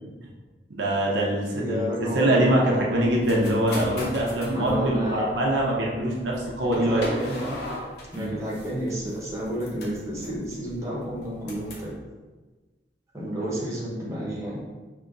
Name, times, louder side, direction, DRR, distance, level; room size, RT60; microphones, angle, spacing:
voice 1, 0.7-7.0 8.1-8.3 13.4-13.5, right 1 dB, 75° right, -3 dB, 0.8 m, -24 dB
voice 2, 1.5-2.6 4.3-5.3 6.6-7.6 8.1-11.9 13.1-14.6, equal, 15° right, -5 dB, 0.9 m, -31 dB
sound 1, 3.0-11.9, left 1 dB, 65° left, 0.8 m, -39 dB
5.6 x 2.8 x 2.5 m, 1.3 s
head